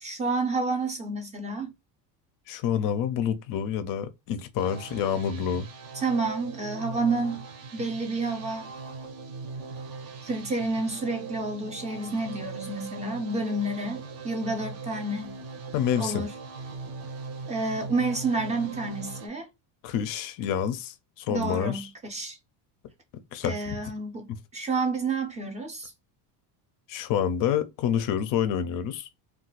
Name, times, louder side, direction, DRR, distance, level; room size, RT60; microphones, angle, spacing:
voice 1, 0.0-1.7 5.9-7.5 7.7-8.7 10.2-15.3 16.0-16.3 17.5-19.5 21.3-22.4 23.4-25.9, right 3 dB, 15° right, 0.4 m, -29 dB
voice 2, 2.5-5.7 15.7-16.2 19.8-21.9 23.3-23.8 26.9-29.1, left 8 dB, 45° left, 0.4 m, -28 dB
sound 1, 4.6-19.3, right 4 dB, 45° right, 0.7 m, -40 dB
2.4 x 2.3 x 3.9 m
cardioid pair, 150°, 48 cm